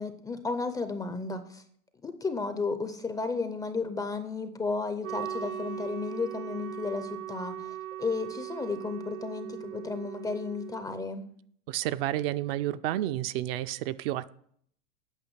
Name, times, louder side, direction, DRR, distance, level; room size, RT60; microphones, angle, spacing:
voice 1, 0.0-1.6 2.0-11.3, left 4 dB, 10° left, 10 dB, 0.4 m, -33 dB
Wind instrument woodwind instrument, 5.0-10.9, right 11 dB, 70° right, 0.9 m, -39 dB
voice 2, 11.7-14.3, right 14 dB, 45° right, 12 dB, 0.5 m, -30 dB
9.0 x 5.6 x 7.9 m, 0.65 s
hypercardioid pair, 125°, 41 cm